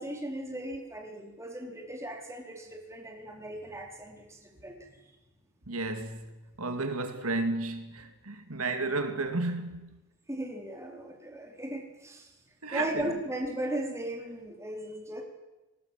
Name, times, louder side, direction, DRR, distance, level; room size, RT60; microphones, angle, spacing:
voice 1, 0.0-4.9 10.3-12.3 12.7-15.2, right 1 dB, 15° right, 4.6 m, -37 dB
voice 2, 5.7-6.3 6.6-9.9 12.6-13.1, right 2 dB, 75° right, 2.5 m, -32 dB
29.0 x 20.0 x 7.6 m
head